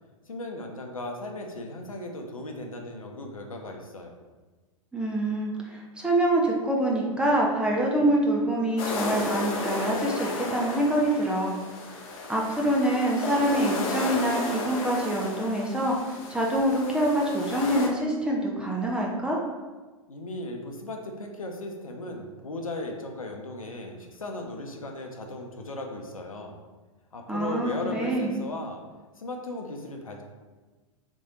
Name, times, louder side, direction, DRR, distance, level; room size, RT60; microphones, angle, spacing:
voice 1, 0.3-4.2 20.1-26.6 27.1-28.8 29.2-30.2, left 2 dB, 75° left, 2 dB, 0.7 m, -36 dB
voice 2, 4.9-11.6 12.3-19.4 27.3-28.4, right 1 dB, 5° right, -2 dB, 0.5 m, -25 dB
sound 1, 8.8-17.9, left 2 dB, 35° left, 0.7 m, -33 dB
3.5 x 3.2 x 4.0 m, 1.3 s
figure-of-eight pair, 100°, 18 cm